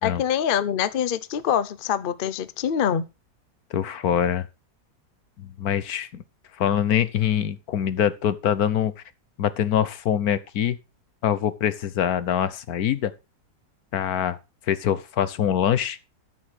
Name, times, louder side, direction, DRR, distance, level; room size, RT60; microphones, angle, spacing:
voice 1, 0.0-3.1, left 9 dB, 50° left, 0.6 m, -24 dB
voice 2, 3.7-4.5 5.4-6.2 6.6-8.9 9.4-10.8 11.2-13.1 13.9-14.4 14.7-16.0, left 9 dB, 70° left, 1.3 m, -24 dB
13.0 x 6.4 x 4.8 m
omnidirectional pair, 1.7 m